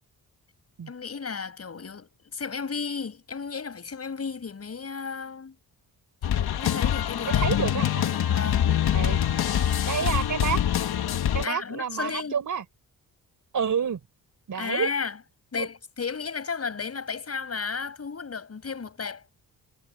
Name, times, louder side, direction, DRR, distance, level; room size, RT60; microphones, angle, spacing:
voice 1, 0.9-5.6 6.3-7.7 8.3-8.7 10.0-10.2 11.4-12.4 14.5-15.2 15.5-19.2, left 5 dB, 40° left, 7.5 m, -34 dB
sound 1, 6.2-11.5, left 10 dB, 80° left, 1.8 m, -24 dB
voice 2, 7.2-8.0 8.9-9.2 9.9-10.6 11.3-12.6 13.5-14.0 14.5-14.9 15.6-15.7, right 7 dB, 55° right, 5.3 m, -29 dB
cardioid pair, 120°, 37 cm